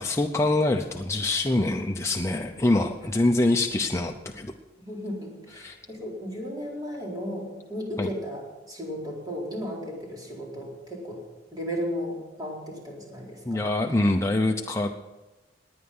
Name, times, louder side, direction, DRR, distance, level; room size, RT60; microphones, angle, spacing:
voice 1, 0.0-4.5 5.6-5.8 8.0-8.1 13.5-15.0, left 2 dB, 15° left, 3 dB, 0.6 m, -25 dB
voice 2, 4.8-11.2 11.5-13.6, equal, 20° right, -3 dB, 4.3 m, -35 dB
19.5 x 9.7 x 5.5 m, 1.1 s
head